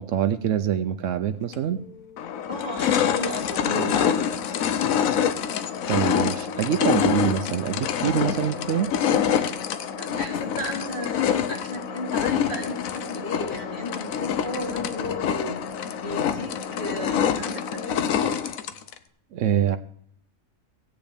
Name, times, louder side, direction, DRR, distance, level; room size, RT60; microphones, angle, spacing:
voice 1, 0.0-1.8 5.9-8.9 19.3-19.8, right 9 dB, 70° right, 10 dB, 0.9 m, -25 dB
sound 1, 1.5-1.6 2.2-19.0, left 8 dB, 90° left, 1.1 m, -26 dB
voice 2, 2.5-4.6 10.0-15.6 16.0-18.1, left 1 dB, 45° left, -4 dB, 3.9 m, -34 dB
17.0 x 8.8 x 3.5 m, 0.67 s
omnidirectional pair, 1.4 m